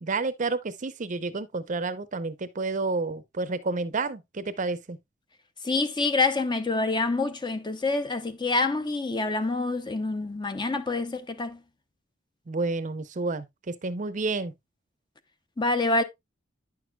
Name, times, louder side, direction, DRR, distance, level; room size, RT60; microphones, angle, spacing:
voice 1, 0.0-5.0 12.5-14.5, right 3 dB, 40° right, 0.6 m, -30 dB
voice 2, 5.6-11.6 15.6-16.0, left 3 dB, 25° left, 0.6 m, -26 dB
9.8 x 6.2 x 2.2 m
head